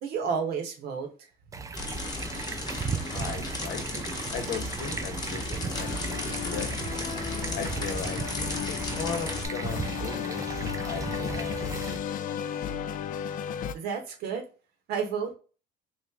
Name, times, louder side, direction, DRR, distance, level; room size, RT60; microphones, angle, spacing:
voice 1, 0.0-1.1 1.5-1.7 13.7-14.4 14.9-15.3, right 6 dB, 75° right, 3 dB, 1.0 m, -31 dB
sound 1, 1.5-12.0, right 5 dB, 20° right, 0.3 m, -36 dB
sound 2, 1.8-9.5, left 2 dB, 25° left, 0.8 m, -35 dB
voice 2, 3.1-6.7 7.6-8.2 8.8-12.3, left 6 dB, 75° left, 6 dB, 0.9 m, -38 dB
sound 3, 5.7-13.7, left 9 dB, 55° left, 0.4 m, -34 dB
3.1 x 2.5 x 3.5 m, 0.35 s
cardioid pair, 110°, 17 cm